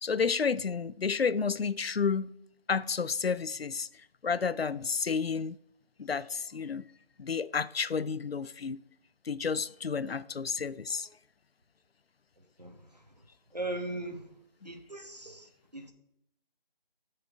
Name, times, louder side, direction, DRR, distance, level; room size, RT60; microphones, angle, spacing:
voice 1, 0.0-2.3 2.7-3.9 4.2-5.6 6.0-6.8 7.2-8.8 9.3-11.1, left 5 dB, 85° left, 0.5 m, -31 dB
voice 2, 12.4-13.2 13.5-14.3 14.6-15.9, right 2 dB, 45° right, 1.0 m, -40 dB
10.0 x 6.5 x 3.6 m
figure-of-eight pair, 175°, 30 cm